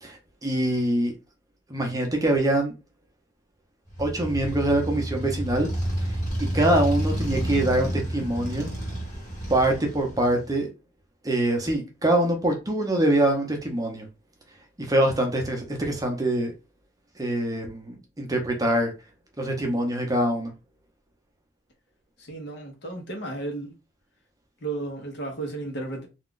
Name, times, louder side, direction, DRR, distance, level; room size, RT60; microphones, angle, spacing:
voice 1, 0.0-1.1 1.7-2.7 4.0-5.7 6.0-6.1 6.5-8.7 9.5-10.7 11.2-14.1 14.9-16.5 17.2-18.9 19.4-20.5, right 1 dB, 20° right, 0.6 m, -24 dB
Motorcycle, 3.9-10.6, equal, 40° left, 1.4 m, -30 dB
voice 2, 22.2-23.8 24.6-26.1, right 2 dB, 60° left, 0.9 m, -33 dB
2.4 x 2.3 x 3.7 m
head